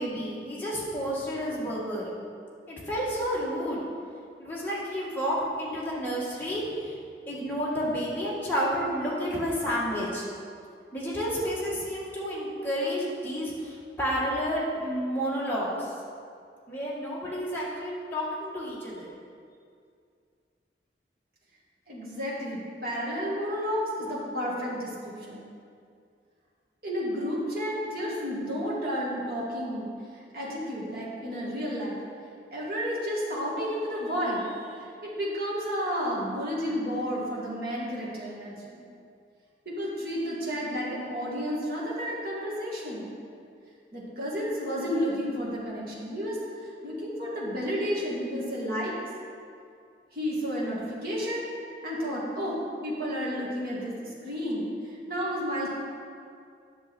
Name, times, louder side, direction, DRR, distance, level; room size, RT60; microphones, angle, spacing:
voice 1, 0.0-2.1 2.7-3.8 4.4-7.0 7.3-10.2 10.9-15.9 16.7-19.1, equal, 10° left, -7 dB, 1.9 m, -30 dB
voice 2, 21.9-25.5 26.8-32.0 32.5-38.8 39.7-43.1 43.9-46.4 46.8-49.0 50.1-51.5 51.8-54.7 55.1-55.7, equal, 55° right, -6 dB, 2.3 m, -31 dB
10.0 x 6.7 x 4.5 m, 2.3 s
head